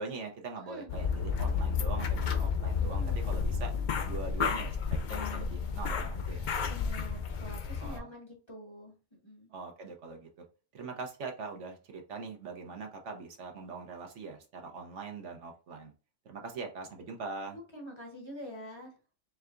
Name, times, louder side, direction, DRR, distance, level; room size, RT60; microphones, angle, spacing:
voice 1, 0.0-3.7 4.0-6.5 7.8-8.1 9.5-10.4 10.7-15.9 16.2-17.6, right 4 dB, 65° right, 1.1 m, -42 dB
sound 1, 0.9-8.0, left 6 dB, 70° left, 0.4 m, -31 dB
voice 2, 2.8-3.3 6.6-9.5 17.5-18.9, equal, 25° left, 0.9 m, -46 dB
4.6 x 3.3 x 2.5 m
omnidirectional pair, 1.4 m